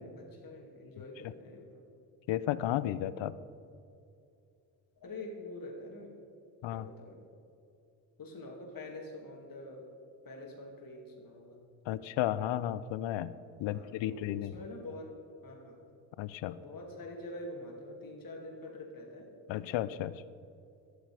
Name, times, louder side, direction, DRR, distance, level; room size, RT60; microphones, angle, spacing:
voice 1, 0.0-1.9 5.0-6.2 6.7-7.3 8.2-9.8 10.2-11.6 13.6-15.1 15.4-15.8 16.5-19.3, left 2 dB, 45° left, 0 dB, 2.5 m, -46 dB
voice 2, 2.3-3.4 6.6-6.8 11.9-13.3 13.6-14.5 16.2-16.6 19.5-20.2, left 13 dB, 65° left, 16 dB, 0.6 m, -33 dB
11.5 x 8.3 x 4.9 m, 2.6 s
supercardioid pair, 55°, 49 cm